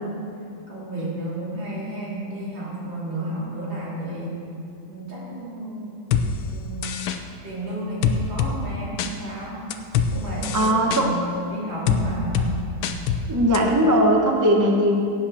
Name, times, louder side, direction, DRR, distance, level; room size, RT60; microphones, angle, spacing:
voice 1, 0.7-4.4 4.9-6.0 6.4-7.0 7.4-9.6 10.1-11.2 11.5-12.5, right 1 dB, 70° right, -7 dB, 3.9 m, -32 dB
sound 1, 6.1-6.3 6.8-7.2 8.0-8.5 9.0-9.1 9.7-10.1 10.4-11.0 11.9-12.0 12.3-12.5 12.8-13.2 13.5-13.6, left 8 dB, 85° left, 1.5 m, -23 dB
voice 2, 10.5-11.1 13.3-15.0, equal, 15° right, 0 dB, 0.7 m, -19 dB
17.0 x 8.7 x 4.3 m, 2.5 s
omnidirectional pair, 2.2 m